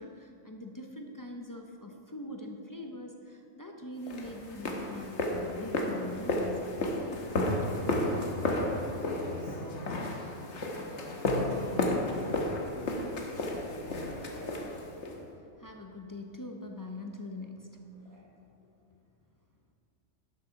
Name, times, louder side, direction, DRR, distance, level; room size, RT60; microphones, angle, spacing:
voice 1, 0.0-8.0 15.4-18.3 18.6-18.7, left 1 dB, 20° left, 2 dB, 0.6 m, -43 dB
sound 1, 4.1-15.2, left 2 dB, 70° left, 1.4 m, -32 dB
voice 2, 9.0-14.7 17.9-18.2, left 1 dB, 60° right, -9 dB, 2.3 m, -47 dB
11.5 x 6.6 x 5.8 m, 2.6 s
omnidirectional pair, 1.2 m